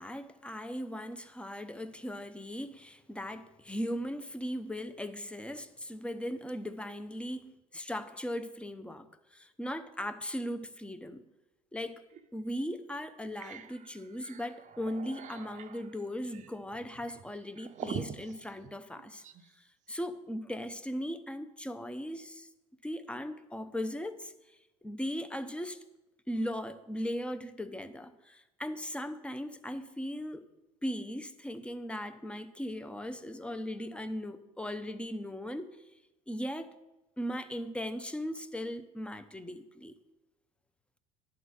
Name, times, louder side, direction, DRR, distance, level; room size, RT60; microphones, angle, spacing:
voice 1, 0.0-9.1 9.3-11.2 11.7-12.0 12.3-19.2 19.9-22.5 22.8-24.3 24.8-25.8 26.3-30.4 30.8-35.7 36.3-36.7 37.2-39.9, equal, 5° left, 0.6 m, -38 dB
sound 1, 12.1-12.3 12.7-12.8 13.1-19.5, right 8 dB, 40° right, 0.6 m, -45 dB
10.5 x 3.9 x 6.3 m
hypercardioid pair, 80°, 19 cm